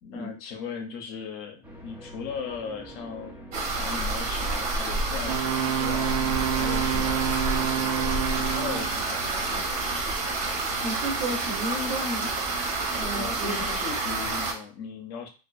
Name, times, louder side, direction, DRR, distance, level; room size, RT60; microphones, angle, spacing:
voice 1, 0.0-3.3 3.8-9.7 13.1-15.3, left 6 dB, 50° left, 4 dB, 0.6 m, -38 dB
sound 1, 1.6-14.2, right 1 dB, 5° right, 0.4 m, -45 dB
sound 2, 3.5-14.5, right 2 dB, 65° right, 1.0 m, -29 dB
Wind instrument woodwind instrument, 5.3-9.0, right 11 dB, 80° right, 0.5 m, -28 dB
voice 2, 10.8-12.3 12.9-13.5, right 1 dB, 40° right, 2 dB, 0.7 m, -32 dB
2.5 x 2.3 x 2.3 m, 0.34 s
supercardioid pair, 155°, 20 cm